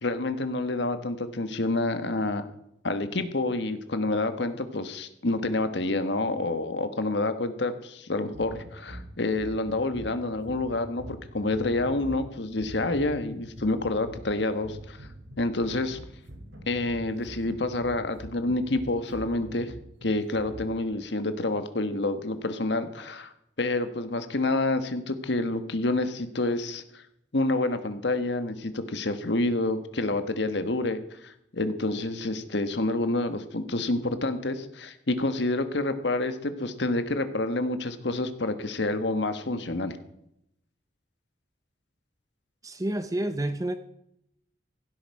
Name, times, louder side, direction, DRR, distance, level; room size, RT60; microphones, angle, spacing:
voice 1, 0.0-2.5 2.8-15.1 15.4-16.0 16.7-19.7 20.0-23.3 23.6-27.0 27.3-40.0, left 2 dB, 65° left, 10 dB, 1.3 m, -28 dB
sound 1, 8.3-21.0, equal, 80° right, 2.9 m, -45 dB
voice 2, 42.6-43.7, right 1 dB, 20° right, 10 dB, 0.6 m, -29 dB
16.0 x 12.0 x 4.7 m, 0.78 s
head